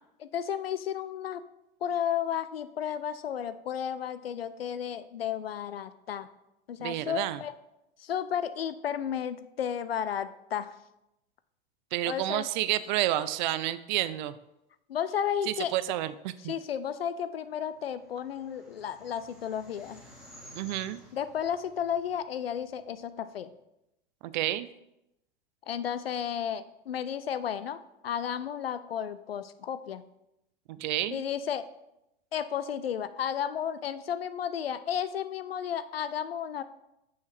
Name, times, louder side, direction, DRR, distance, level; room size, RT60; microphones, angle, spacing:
voice 1, 0.2-1.4 1.8-6.3 6.7-7.5 8.0-10.7 12.0-12.5 14.9-15.7 16.4-20.0 21.1-23.5 25.7-30.0 31.1-31.7 32.3-36.6, left 9 dB, 85° left, 13 dB, 0.5 m, -33 dB
voice 2, 6.8-7.4 11.9-14.4 15.7-16.5 20.5-21.0 24.2-24.7 30.7-31.2, right 14 dB, 55° right, 14 dB, 0.4 m, -30 dB
sound 1, 17.6-23.0, equal, ahead, 1.5 m, -54 dB
6.4 x 5.5 x 3.2 m, 0.86 s
figure-of-eight pair, 95°, 29 cm